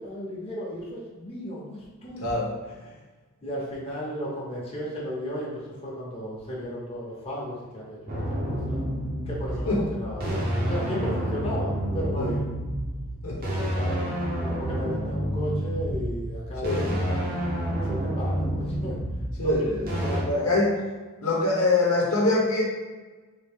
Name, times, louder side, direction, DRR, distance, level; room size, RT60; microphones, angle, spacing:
voice 1, 0.0-2.2 2.8-2.9 3.4-8.8 9.3-12.5 13.3-14.0 14.4-17.3 17.8-18.9 19.4-19.7 20.0-20.5, equal, 25° left, -6 dB, 0.9 m, -35 dB
voice 2, 2.2-2.5 9.7-9.9 12.2-12.3 13.2-13.4 16.6-17.0 19.4-20.8 21.2-22.6, left 2 dB, 75° left, -3 dB, 0.9 m, -24 dB
sound 1, 8.1-20.2, equal, 40° right, 0.8 m, -29 dB
3.7 x 2.7 x 3.6 m, 1.3 s
head